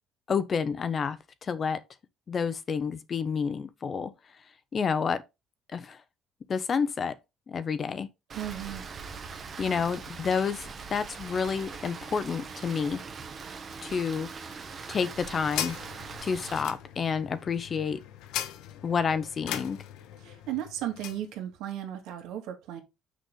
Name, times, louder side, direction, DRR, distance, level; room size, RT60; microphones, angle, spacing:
voice 1, 0.3-1.8 2.3-4.1 4.7-5.2 5.7-6.0 6.5-7.2 7.5-8.1 9.6-13.0 13.8-14.3 14.9-15.8 16.2-18.0 18.8-19.8, left 6 dB, 25° left, 0.6 m, -29 dB
Rain, 8.3-16.6, right 5 dB, 25° right, 0.9 m, -41 dB
voice 2, 8.3-8.8 20.2-22.8, right 11 dB, 75° right, 2.1 m, -35 dB
sound 1, 14.7-21.3, left 11 dB, 75° left, 1.0 m, -39 dB
6.5 x 6.4 x 3.9 m
cardioid pair, 175°, 0 cm